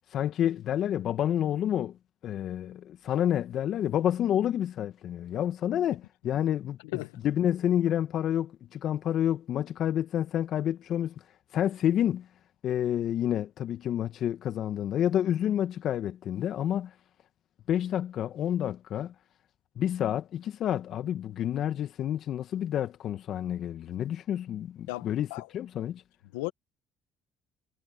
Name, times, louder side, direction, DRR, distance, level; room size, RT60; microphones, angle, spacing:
voice 1, 0.1-2.0 2.2-6.8 7.2-11.1 11.5-12.3 12.6-16.9 17.7-19.1 19.8-25.3 25.5-26.0, left 10 dB, 60° left, 1.8 m, -29 dB
voice 2, 24.9-25.5 26.3-26.5, left 21 dB, 85° left, 1.6 m, -35 dB
hypercardioid pair, 65°, 0 cm